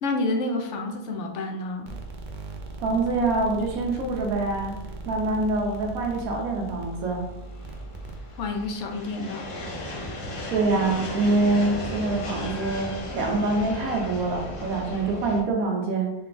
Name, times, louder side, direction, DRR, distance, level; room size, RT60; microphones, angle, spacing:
voice 1, 0.0-1.9 8.4-9.5, left 2 dB, 65° left, 3 dB, 0.9 m, -29 dB
sound 1, 1.9-8.7, right 2 dB, 75° right, 0.4 m, -39 dB
voice 2, 2.8-4.8 5.0-7.2 10.5-16.1, right 3 dB, 90° right, 1 dB, 1.3 m, -25 dB
sound 2, 4.5-15.4, left 1 dB, 45° left, 0.4 m, -36 dB
4.1 x 2.2 x 3.8 m, 0.91 s
omnidirectional pair, 1.5 m